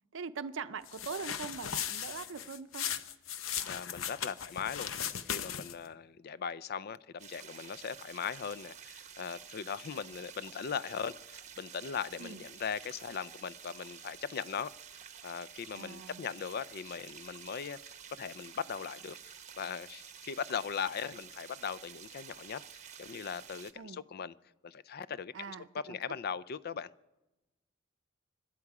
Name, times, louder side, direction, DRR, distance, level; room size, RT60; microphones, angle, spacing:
voice 1, 0.1-2.9 12.2-12.4 15.7-16.3 23.8-24.0 25.3-26.0, right 5 dB, 65° right, 0.6 m, -42 dB
sound 1, 0.9-5.9, left 9 dB, 80° left, 0.7 m, -37 dB
voice 2, 3.7-4.9 5.2-14.7 15.2-24.3 24.6-26.9, left 7 dB, 50° left, 0.4 m, -39 dB
sound 2, 7.2-23.7, right 8 dB, 35° right, 0.8 m, -51 dB
25.5 x 11.0 x 4.8 m
head